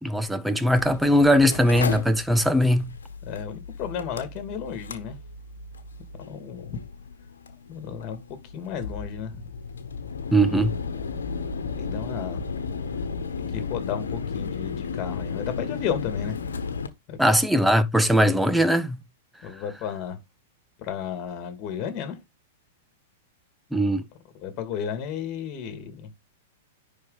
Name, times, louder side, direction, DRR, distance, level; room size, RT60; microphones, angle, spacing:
voice 1, 0.0-2.9 10.3-10.7 17.2-19.0 23.7-24.1, equal, 5° right, 0.9 m, -20 dB
Mechanical fan, 0.8-16.9, left 5 dB, 75° left, 1.4 m, -34 dB
voice 2, 3.3-5.2 6.1-6.8 7.7-8.2 8.5-9.4 11.6-12.4 13.4-16.4 17.1-17.2 19.4-20.2 20.8-22.2 24.3-26.1, left 8 dB, 35° left, 2.7 m, -33 dB
10.5 x 4.3 x 4.1 m
figure-of-eight pair, 105°, 0 cm